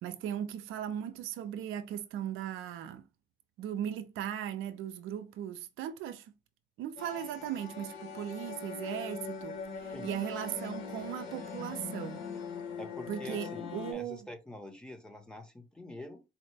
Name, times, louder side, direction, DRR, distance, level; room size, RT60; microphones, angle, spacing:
voice 1, 0.0-3.0 3.6-6.3 6.8-12.2 13.1-14.3, right 10 dB, 90° right, 0.5 m, -38 dB
sound 1, 7.0-13.9, left 5 dB, 80° left, 1.0 m, -41 dB
voice 2, 12.8-16.2, left 1 dB, 5° left, 0.9 m, -46 dB
4.2 x 2.1 x 3.2 m
cardioid pair, 90°, 20 cm